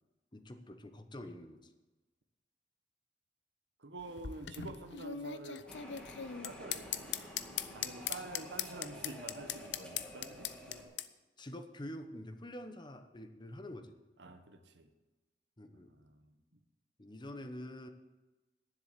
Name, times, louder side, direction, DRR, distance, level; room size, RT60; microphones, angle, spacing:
voice 1, 0.3-1.7 11.4-13.9 15.6-15.9 17.0-17.9, left 1 dB, 25° left, 8 dB, 0.9 m, -46 dB
voice 2, 3.8-5.7 6.4-7.1 7.7-10.6 14.2-14.9 15.7-16.6, right 2 dB, 85° right, 8 dB, 1.3 m, -48 dB
sound 1, 4.0-11.1, left 10 dB, 80° left, 0.6 m, -39 dB
sound 2, 5.7-10.8, equal, 5° left, 2.4 m, -50 dB
10.5 x 7.5 x 8.1 m, 1.1 s
head